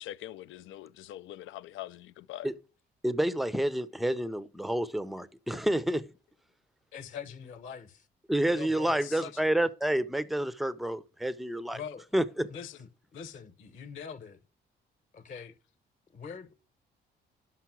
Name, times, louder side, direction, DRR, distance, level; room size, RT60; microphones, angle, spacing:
voice 1, 0.0-2.5 6.9-7.8 8.5-8.7 9.0-9.4 11.8-11.9 12.5-12.8 13.1-13.4 13.8-14.3 15.3-15.5, left 14 dB, 80° left, 0.4 m, -44 dB
voice 2, 3.0-6.1 8.3-11.8 12.1-12.5, right 1 dB, ahead, 0.5 m, -29 dB
voice 3, 6.9-8.1 8.5-9.5 11.7-12.1 12.5-14.4 15.1-15.6 16.1-16.5, left 4 dB, 40° left, 1.0 m, -45 dB
5.8 x 5.4 x 5.8 m
cardioid pair, 90°, 20 cm